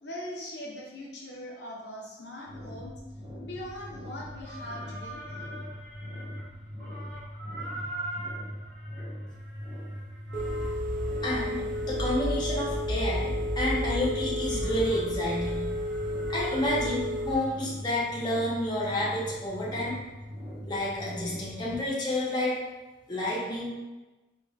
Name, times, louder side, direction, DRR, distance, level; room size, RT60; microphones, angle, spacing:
voice 1, 0.0-2.9 3.4-5.2, left 1 dB, 70° left, -4 dB, 0.8 m, -41 dB
sound 1, 2.5-21.8, equal, 25° right, 1.3 m, -41 dB
sound 2, 4.0-6.5 6.8-13.9 14.4-17.7 18.0-18.1 18.6-18.7, right 1 dB, 80° right, 1.3 m, -44 dB
Telephone, 10.3-17.3, equal, 40° right, 0.6 m, -31 dB
voice 2, 11.2-15.7 16.3-20.0 20.6-22.6 23.1-23.7, left 1 dB, 25° left, -6 dB, 1.0 m, -30 dB
4.3 x 3.7 x 2.5 m, 1.1 s
head